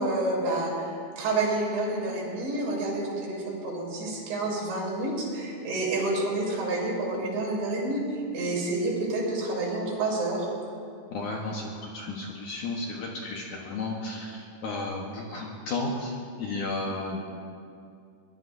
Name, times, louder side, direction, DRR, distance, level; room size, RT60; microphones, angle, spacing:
voice 1, 0.0-10.5, right 2 dB, 85° right, -3 dB, 5.8 m, -29 dB
voice 2, 11.1-17.2, left 2 dB, 65° left, -2 dB, 2.1 m, -33 dB
23.0 x 20.0 x 2.7 m, 2.4 s
omnidirectional pair, 4.9 m